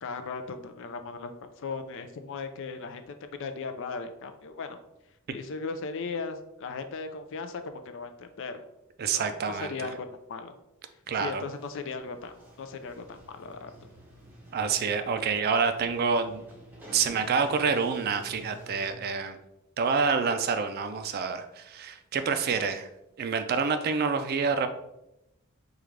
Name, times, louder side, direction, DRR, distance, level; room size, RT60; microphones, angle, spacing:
voice 1, 0.0-4.8 5.3-8.6 9.1-10.5 11.1-12.3 12.6-13.9, left 4 dB, 60° left, 8 dB, 0.4 m, -37 dB
voice 2, 9.0-9.9 11.1-11.4 14.5-16.4 16.9-19.4 19.8-22.9 23.2-24.7, right 5 dB, 45° right, 9 dB, 0.3 m, -27 dB
Sliding door, 11.0-18.9, right 1 dB, 10° right, 0.7 m, -50 dB
5.0 x 2.4 x 3.1 m, 0.86 s
head